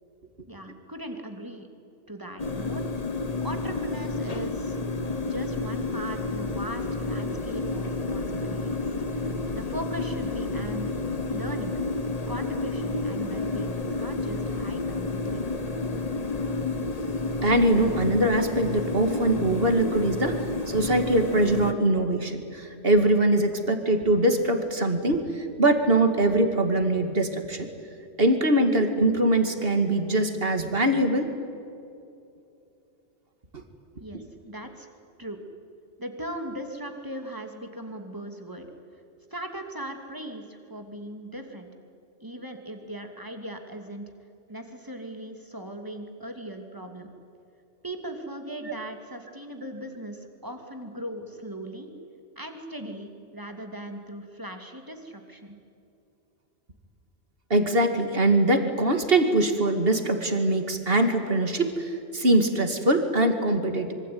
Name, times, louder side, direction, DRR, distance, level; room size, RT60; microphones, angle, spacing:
voice 1, 0.5-1.7 2.1-2.8 3.4-4.8 5.3-9.0 9.5-10.9 11.3-11.7 12.3-15.4 34.0-34.9 35.2-35.4 36.0-38.7 39.3-41.7 42.2-44.1 44.5-47.1 47.8-51.9 52.4-55.6, right 1 dB, 15° right, 4 dB, 2.7 m, -38 dB
sound 1, 2.4-21.7, left 3 dB, 35° left, 1.3 m, -30 dB
voice 2, 17.4-27.7 28.2-31.3 57.5-63.9, right 1 dB, 50° right, 7 dB, 2.5 m, -23 dB
26.0 x 24.0 x 9.5 m, 2.7 s
omnidirectional pair, 1.2 m